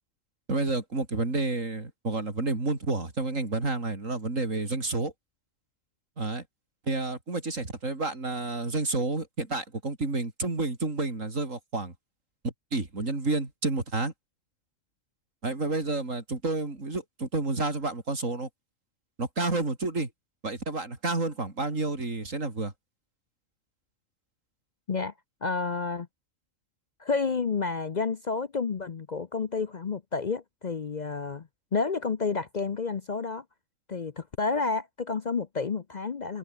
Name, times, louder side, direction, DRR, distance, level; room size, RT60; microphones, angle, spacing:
voice 1, 0.5-5.1 6.2-6.4 6.9-11.9 12.4-14.1 15.4-18.5 19.2-20.1 20.4-22.7, right 3 dB, 75° right, 4.5 m, -30 dB
voice 2, 25.4-26.1 27.0-33.4 33.9-36.4, left 4 dB, 40° left, 0.7 m, -30 dB
omnidirectional pair, 1.3 m